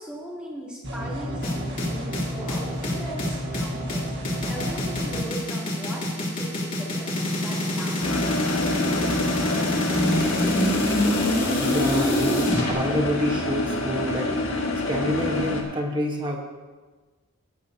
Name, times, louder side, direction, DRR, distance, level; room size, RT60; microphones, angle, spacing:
voice 1, 0.0-8.1, right 1 dB, 5° right, -6 dB, 3.0 m, -38 dB
sound 1, 0.8-5.2, equal, 50° right, 1.8 m, -32 dB
sound 2, 1.4-12.7, left 1 dB, 40° left, 2.9 m, -25 dB
sound 3, 8.0-15.6, left 2 dB, 70° left, 1.9 m, -26 dB
voice 2, 11.5-14.4 14.9-16.4, equal, 20° right, 1 dB, 1.3 m, -27 dB
17.5 x 10.0 x 2.9 m, 1.3 s
head